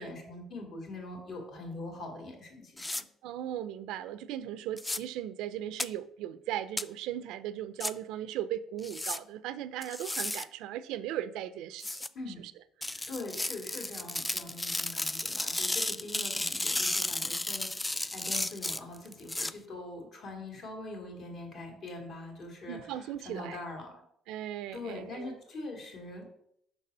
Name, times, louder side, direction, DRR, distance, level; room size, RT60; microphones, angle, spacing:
voice 1, 0.0-3.0 12.1-12.4 13.1-24.0 24.7-26.3, left 2 dB, 60° left, 2.3 m, -43 dB
sound 1, 2.8-3.0 4.8-5.0 5.8-5.9 6.8-6.9 7.8-7.9 8.8-9.2 9.8-10.4 11.8-12.1 12.8-19.5, left 2 dB, 15° left, 0.3 m, -33 dB
voice 2, 3.2-12.0 12.9-13.0 22.7-23.6 24.3-25.3, right 11 dB, 85° right, 0.4 m, -37 dB
5.8 x 4.1 x 5.4 m
cardioid pair, 100°, 0 cm